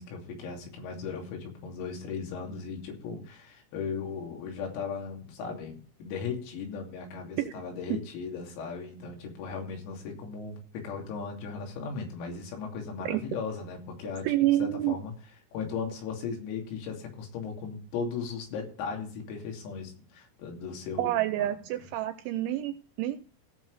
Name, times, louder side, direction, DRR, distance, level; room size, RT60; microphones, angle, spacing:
voice 1, 0.0-15.1 15.5-21.1 21.4-21.6, left 5 dB, 90° left, 1 dB, 5.6 m, -37 dB
voice 2, 14.2-15.0 21.0-23.2, right 14 dB, 85° right, 11 dB, 2.7 m, -28 dB
17.0 x 6.2 x 4.8 m, 0.42 s
omnidirectional pair, 6.0 m